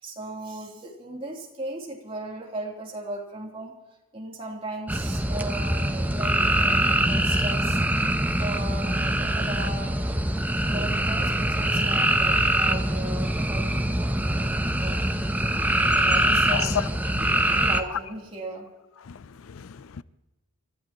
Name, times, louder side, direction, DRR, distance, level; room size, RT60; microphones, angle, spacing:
voice 1, 0.0-3.8 4.1-7.8 8.4-10.2 10.6-15.1 15.9-16.9 17.2-18.7, right 1 dB, 25° right, 3.2 m, -37 dB
sound 1, 4.9-17.8, right 1 dB, 10° right, 0.8 m, -24 dB
voice 2, 16.5-16.8 17.3-17.4 19.0-20.0, left 8 dB, 65° left, 0.5 m, -32 dB
29.0 x 14.0 x 3.0 m
head